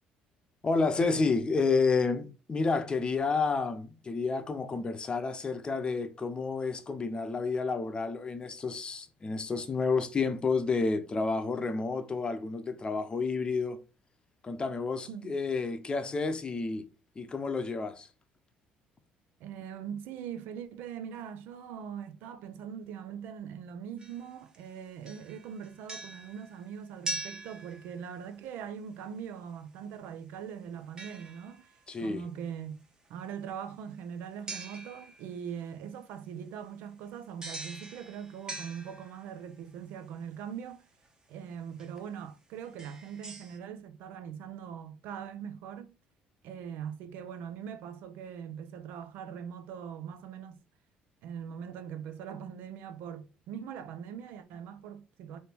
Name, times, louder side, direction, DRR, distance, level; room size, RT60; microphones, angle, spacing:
voice 1, 0.6-13.8 14.4-16.9 17.2-18.1 31.9-32.2, left 4 dB, 30° left, 0.7 m, -30 dB
voice 2, 19.4-31.7 32.0-32.8 33.1-40.9 41.3-45.9 46.4-50.6 51.2-55.4, right 8 dB, 80° right, 0.6 m, -41 dB
sound 1, 24.0-24.7 25.0-28.3 31.0-31.8 34.5-35.4 37.4-39.5 41.0-41.1 41.8-42.0 42.6-43.6, right 2 dB, 20° right, 1.1 m, -43 dB
3.4 x 2.7 x 4.4 m
cardioid pair, 95°, 3 cm